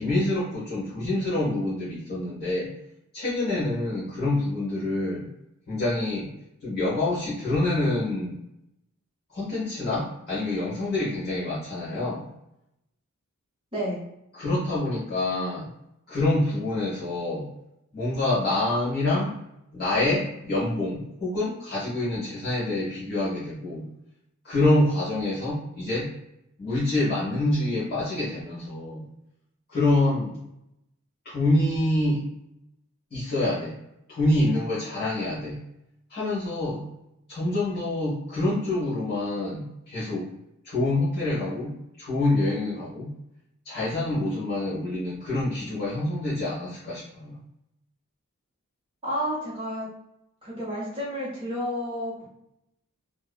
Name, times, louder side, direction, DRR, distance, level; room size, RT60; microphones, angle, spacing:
voice 1, 0.0-2.7 3.1-5.3 5.7-6.3 6.6-8.4 9.3-12.3 14.3-15.7 16.1-17.5 17.9-19.3 19.7-23.9 24.4-26.1 26.6-29.0 29.7-30.4 31.2-32.2 33.1-33.8 34.1-35.6 36.1-36.8 37.3-40.3 40.6-43.1 43.6-47.3, left 2 dB, 45° left, -10 dB, 1.0 m, -26 dB
voice 2, 13.7-14.1 49.0-49.9 50.4-52.3, equal, 25° right, -6 dB, 0.9 m, -31 dB
2.7 x 2.2 x 2.3 m, 0.82 s
head